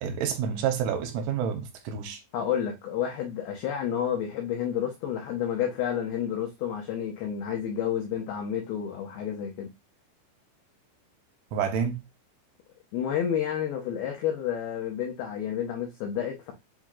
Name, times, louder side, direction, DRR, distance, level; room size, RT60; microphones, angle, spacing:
voice 1, 0.0-2.2 11.5-12.0, right 7 dB, 80° right, 3.1 m, -29 dB
voice 2, 2.3-9.7 12.9-16.5, left 9 dB, 85° left, 2.2 m, -30 dB
7.7 x 2.7 x 2.4 m
omnidirectional pair, 5.6 m